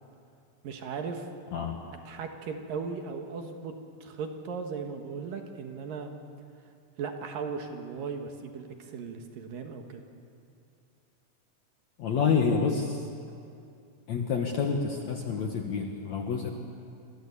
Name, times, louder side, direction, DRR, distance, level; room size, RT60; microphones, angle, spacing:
voice 1, 0.6-1.3 2.1-3.7 4.0-6.1 7.0-10.0, right 5 dB, 70° right, 4 dB, 3.3 m, -37 dB
voice 2, 12.0-13.1 14.1-16.5, left 5 dB, 55° left, 2 dB, 2.4 m, -28 dB
28.0 x 24.5 x 8.5 m, 2.5 s
omnidirectional pair, 4.2 m